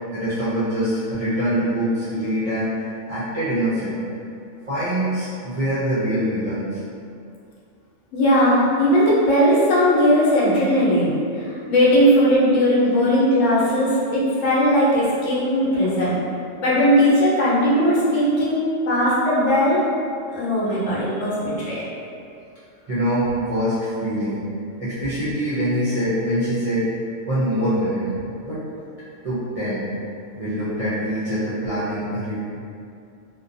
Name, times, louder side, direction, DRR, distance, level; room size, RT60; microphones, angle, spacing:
voice 1, 0.1-4.0 4.7-6.8 15.7-15.9 22.9-24.4 24.8-26.9 27.3-28.1 28.4-28.6 29.2-29.8 30.3-32.4, equal, 50° right, -12 dB, 0.4 m, -24 dB
voice 2, 8.1-16.2 16.6-19.9 20.3-21.9, equal, 80° left, -7 dB, 1.0 m, -18 dB
2.5 x 2.2 x 2.5 m, 2.5 s
omnidirectional pair, 1.3 m